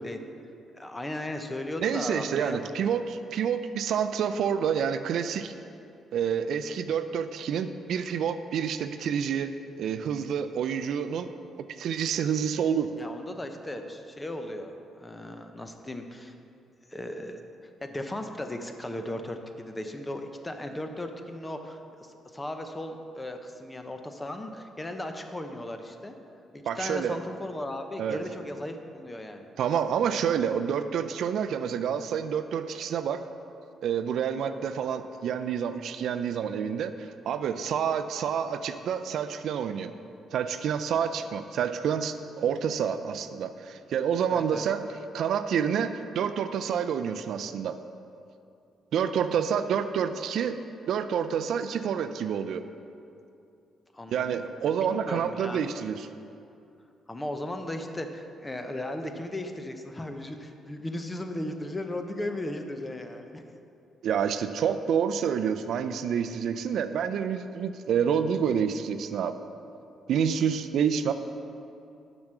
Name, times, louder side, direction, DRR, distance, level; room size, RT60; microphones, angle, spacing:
voice 1, 0.7-2.7 13.0-14.7 15.0-16.3 16.9-17.4 17.8-26.1 26.5-29.5 44.3-44.6 53.9-54.3 54.9-55.6 57.1-63.5, left 1 dB, 15° left, 6 dB, 0.7 m, -36 dB
voice 2, 1.8-5.5 6.1-9.5 9.8-11.3 11.8-12.9 26.6-27.2 28.0-28.2 29.6-33.2 33.8-39.9 40.3-44.8 45.1-47.8 48.9-50.6 50.9-52.6 54.1-56.1 64.0-69.4 70.1-71.1, right 7 dB, 70° right, 9 dB, 0.4 m, -28 dB
7.0 x 6.1 x 6.6 m, 2.6 s
cardioid pair, 90°, 0 cm